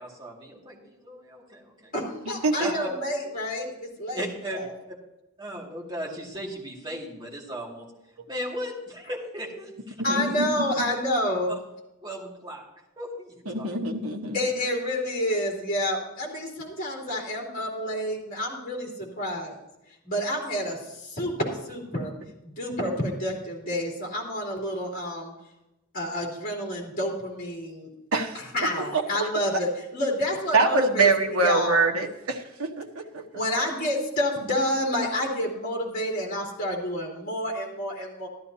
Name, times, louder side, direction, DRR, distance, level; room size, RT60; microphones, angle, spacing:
voice 1, 0.0-1.9 2.6-2.9 4.1-4.6 5.4-7.9 8.3-10.3 11.5-11.6 12.0-12.6 13.0-13.7, equal, 20° right, -3 dB, 2.2 m, -37 dB
voice 2, 1.9-4.7 10.0-11.5 14.3-19.6 20.0-22.1 22.4-25.3 25.9-27.9 28.3-31.9 33.3-38.3, left 1 dB, 40° left, -2 dB, 3.2 m, -29 dB
voice 3, 10.0-10.6 13.5-14.4 28.1-28.4 28.9-29.3 30.5-33.2, right 3 dB, 85° right, 4 dB, 1.2 m, -24 dB
13.0 x 12.0 x 2.8 m, 0.92 s
head